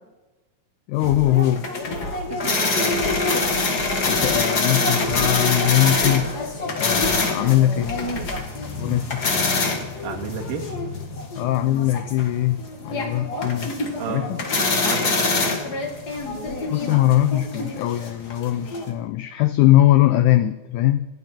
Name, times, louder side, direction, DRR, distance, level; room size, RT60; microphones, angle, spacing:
voice 1, 0.9-1.7 4.0-6.4 6.8-8.0 8.8-9.4 11.4-13.7 14.1-14.5 16.7-21.1, left 14 dB, 85° left, 12 dB, 1.7 m, -21 dB
sound 1, 1.0-2.4 2.9-4.5 4.9-6.4 6.9-8.5 8.9-9.0, equal, 70° left, 7.8 m, -34 dB
sound 2, 1.0-18.9, left 3 dB, 40° left, 1.6 m, -25 dB
voice 2, 2.3-3.2 10.0-10.7 14.0-15.5, right 7 dB, 70° right, 1 dB, 3.3 m, -32 dB
28.0 x 10.5 x 4.4 m, 1.1 s
omnidirectional pair, 4.2 m